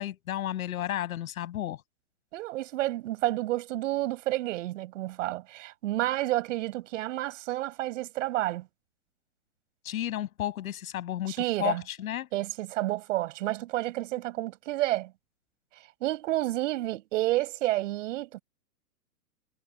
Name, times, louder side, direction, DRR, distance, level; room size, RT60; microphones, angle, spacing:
voice 1, 0.0-1.8 9.8-12.3, left 12 dB, 60° left, 7.1 m, -32 dB
voice 2, 2.3-8.7 11.3-11.8 12.3-15.1 16.0-18.4, right 16 dB, 50° right, 6.4 m, -30 dB
hypercardioid pair, 150°, 47 cm